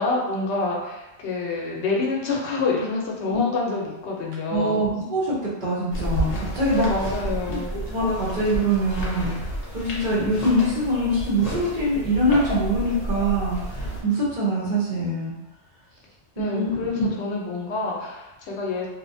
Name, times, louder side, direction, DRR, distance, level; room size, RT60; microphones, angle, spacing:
voice 1, 0.0-4.8 6.7-7.8 16.4-18.9, left 3 dB, 75° left, -2 dB, 0.9 m, -27 dB
voice 2, 4.5-6.9 7.9-15.3 16.4-17.1, right 1 dB, 45° right, -7 dB, 0.8 m, -24 dB
sound 1, 5.9-14.0, right 1 dB, 45° left, 0.6 m, -31 dB
2.8 x 2.0 x 2.5 m, 1.0 s
omnidirectional pair, 1.2 m